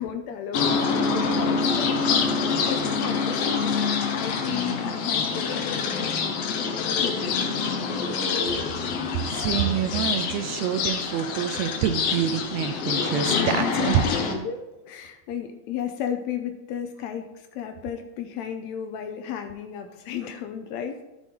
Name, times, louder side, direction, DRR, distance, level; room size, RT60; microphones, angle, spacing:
voice 1, 0.0-7.7 13.8-21.0, left 8 dB, 80° left, 7 dB, 1.9 m, -34 dB
sound 1, 0.5-14.3, left 5 dB, 65° left, 1.9 m, -26 dB
voice 2, 9.3-14.1, right 10 dB, 80° right, 8 dB, 1.7 m, -26 dB
12.5 x 6.1 x 3.7 m, 1.0 s
omnidirectional pair, 3.3 m